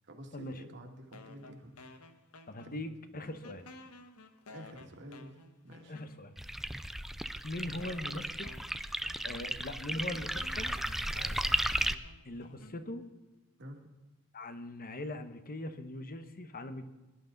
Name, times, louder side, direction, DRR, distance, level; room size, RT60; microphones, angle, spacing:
voice 1, 0.0-1.7 2.7-2.8 4.5-5.4 5.6-6.0 13.6-13.8, equal, 55° right, 3 dB, 2.1 m, -49 dB
sound 1, 1.1-3.0 3.2-6.5 7.2-7.3 7.8-13.2, left 2 dB, 80° left, 1.2 m, -54 dB
voice 2, 2.5-3.7 5.9-6.3 7.4-8.5 9.2-10.7 12.2-13.0 14.3-16.8, left 1 dB, 40° left, 10 dB, 1.1 m, -41 dB
sound 2, 6.4-12.0, right 1 dB, ahead, 0.4 m, -35 dB
20.0 x 11.5 x 4.0 m, 1.1 s
head